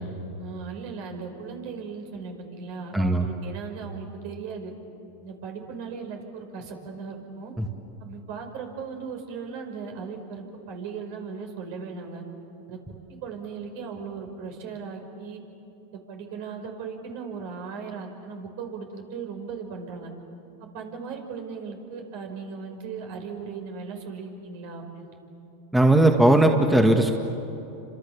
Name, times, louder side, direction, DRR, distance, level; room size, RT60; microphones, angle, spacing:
voice 1, 0.4-4.7 5.2-7.5 8.0-12.2 12.7-12.8 13.1-15.4 15.9-20.1 20.6-25.1, right 5 dB, 60° right, 3 dB, 5.7 m, -37 dB
voice 2, 2.9-3.3 7.6-7.7 25.7-27.1, right 1 dB, 5° right, 3 dB, 2.0 m, -18 dB
30.0 x 26.5 x 7.2 m, 2.9 s
hypercardioid pair, 105°, 0 cm